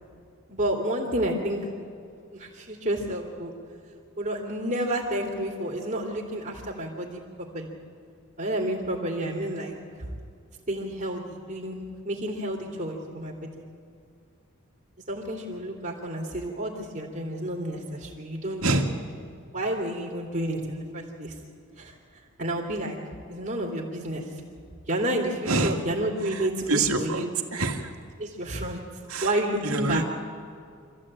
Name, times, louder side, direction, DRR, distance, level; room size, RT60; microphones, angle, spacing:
voice 1, 0.5-1.7 2.3-3.5 4.2-7.7 8.4-9.7 10.7-13.5 15.1-18.8 19.5-21.3 21.8-21.9 22.4-23.0 23.3-24.2 24.9-27.3 28.2-28.8 29.2-30.0, right 1 dB, 40° right, -1 dB, 2.8 m, -30 dB
voice 2, 25.5-25.8 26.2-27.3 27.5-27.9 29.1-29.3 29.6-30.0, right 3 dB, 80° right, 3 dB, 2.1 m, -26 dB
25.5 x 15.0 x 8.8 m, 2.3 s
head